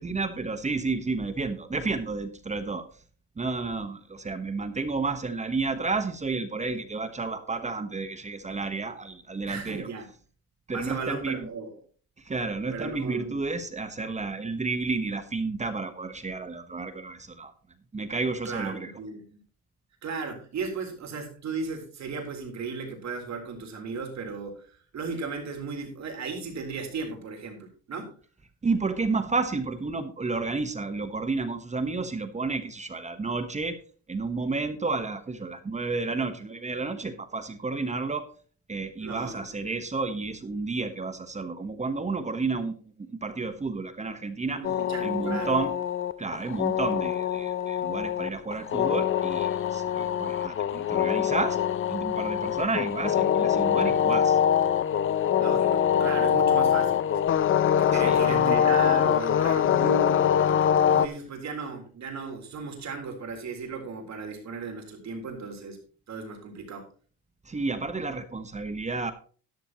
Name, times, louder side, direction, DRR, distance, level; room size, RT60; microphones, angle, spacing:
voice 1, 0.0-2.9 3.4-9.9 10.7-11.5 12.2-17.5 17.9-18.9 28.6-33.8 34.1-38.3 38.7-44.7 45.0-45.7 46.2-51.6 51.9-54.4 57.9-58.6 67.4-69.1, right 3 dB, 20° right, 10 dB, 1.1 m, -31 dB
voice 2, 9.5-10.1 10.7-11.7 12.7-13.4 18.4-19.4 20.0-28.1 39.0-39.4 44.5-45.5 55.4-57.2 57.8-60.3 60.9-65.8 66.1-66.9, right 4 dB, 50° right, 3 dB, 3.7 m, -36 dB
sound 1, 44.6-61.1, left 9 dB, 35° left, 0.6 m, -24 dB
12.5 x 11.5 x 3.0 m, 0.41 s
cardioid pair, 110°, 35 cm